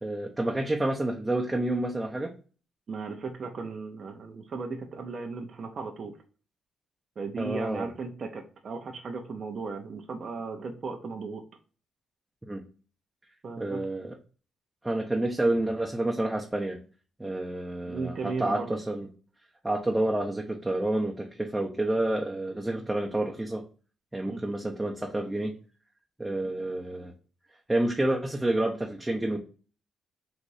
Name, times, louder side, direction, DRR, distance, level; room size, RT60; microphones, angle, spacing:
voice 1, 0.0-2.3 7.4-7.9 12.5-12.6 13.6-14.1 14.8-16.8 17.2-19.1 19.6-23.6 24.1-25.5 26.2-27.1 27.7-29.4, right 1 dB, 10° right, 0 dB, 0.7 m, -29 dB
voice 2, 2.9-6.2 7.2-11.4 13.4-13.8 17.9-18.7 24.3-24.4, right 4 dB, 45° right, 3 dB, 0.8 m, -36 dB
4.1 x 2.6 x 4.7 m, 0.38 s
cardioid pair, 90°, 0 cm